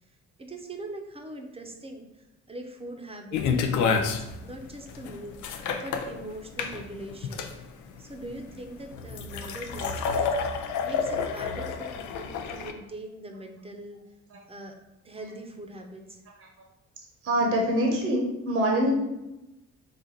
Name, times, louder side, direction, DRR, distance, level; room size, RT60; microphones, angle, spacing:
voice 1, 0.0-5.5 5.8-7.5 8.0-14.0 14.5-14.7 15.0-16.2, right 1 dB, 20° right, 4 dB, 0.7 m, -42 dB
sound 1, 3.3-12.7, left 5 dB, 80° left, 0.5 m, -29 dB
voice 2, 17.2-18.9, right 1 dB, 50° right, 0 dB, 0.9 m, -24 dB
5.0 x 2.5 x 3.9 m, 0.95 s
cardioid pair, 90°, 30 cm